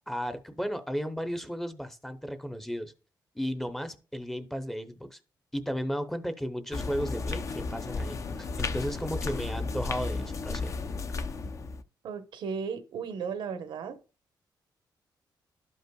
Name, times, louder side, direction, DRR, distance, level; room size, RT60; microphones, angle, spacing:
voice 1, 0.1-2.9 3.3-5.2 5.5-10.7, equal, 5° left, 0.7 m, -34 dB
sound 1, 6.7-11.8, left 4 dB, 40° left, 0.6 m, -33 dB
voice 2, 12.0-14.0, right 6 dB, 85° right, 1.0 m, -35 dB
12.0 x 5.4 x 2.3 m
wide cardioid pair, 145°, 8 cm